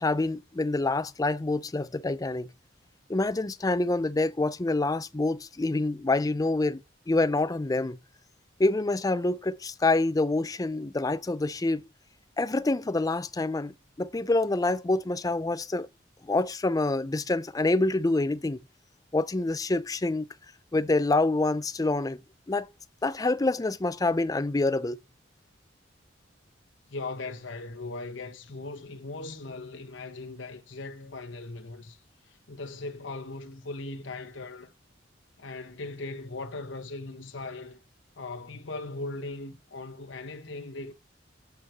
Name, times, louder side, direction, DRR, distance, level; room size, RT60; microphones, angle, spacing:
voice 1, 0.0-2.5 3.1-6.8 7.1-8.0 8.6-11.8 12.4-15.9 16.2-18.6 19.1-20.3 20.7-22.2 22.5-22.7 23.0-25.0, left 2 dB, 20° left, 0.4 m, -26 dB
voice 2, 26.9-32.0 32.3-34.7 35.4-37.8 38.2-40.9, left 2 dB, 75° left, 1.1 m, -39 dB
8.5 x 4.5 x 6.1 m
head